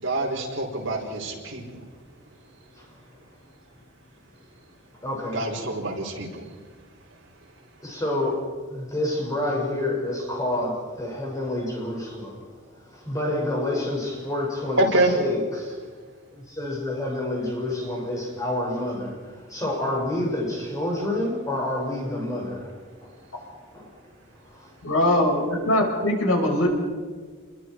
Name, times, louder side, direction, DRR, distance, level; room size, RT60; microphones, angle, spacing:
voice 1, 0.0-1.6 5.3-6.5 14.8-15.1, right 1 dB, 60° right, 5.0 m, -25 dB
voice 2, 5.0-5.5 7.8-12.5 12.8-14.9 15.1-15.9 16.3-24.0 24.4-24.7, left 1 dB, 15° left, 6.4 m, -29 dB
voice 3, 24.8-26.7, left 1 dB, 85° left, 6.3 m, -21 dB
28.5 x 22.5 x 4.8 m
head